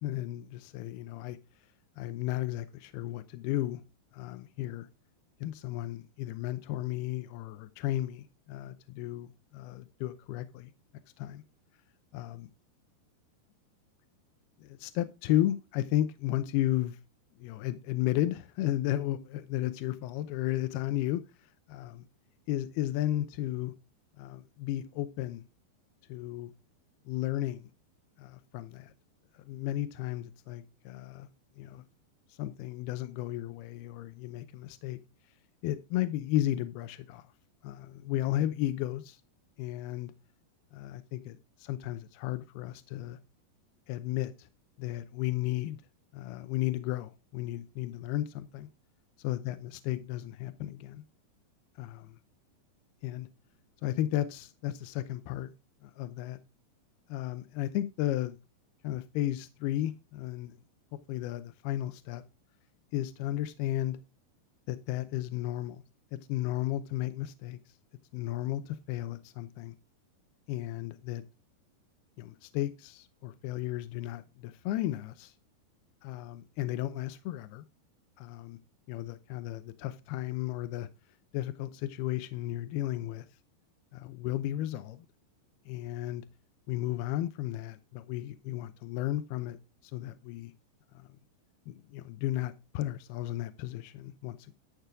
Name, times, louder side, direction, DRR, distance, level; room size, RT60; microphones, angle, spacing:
voice 1, 0.0-1.4 2.0-3.8 4.1-4.9 5.4-10.7 11.2-11.4 12.1-12.5 14.6-17.0 17.4-22.1 22.5-23.7 24.2-25.4 26.1-26.5 27.1-27.7 28.2-28.9 29.3-31.3 31.6-31.8 32.3-35.0 35.6-37.3 37.6-39.2 39.6-40.1 40.7-43.2 43.9-44.5 44.8-45.8 46.1-48.7 49.2-51.0 51.8-52.2 53.0-53.3 53.8-55.5 55.8-56.4 57.1-58.4 58.8-60.6 61.1-62.2 62.9-64.0 64.7-65.8 66.1-67.8 68.1-69.7 70.5-71.2 72.2-75.3 76.0-77.6 78.2-78.6 78.9-80.9 81.3-83.3 83.9-85.1 85.7-86.3 86.7-89.6 89.8-90.5 90.9-91.2 91.7-94.5, left 14 dB, 80° left, 2.4 m, -34 dB
13.5 x 6.0 x 4.8 m
omnidirectional pair, 5.0 m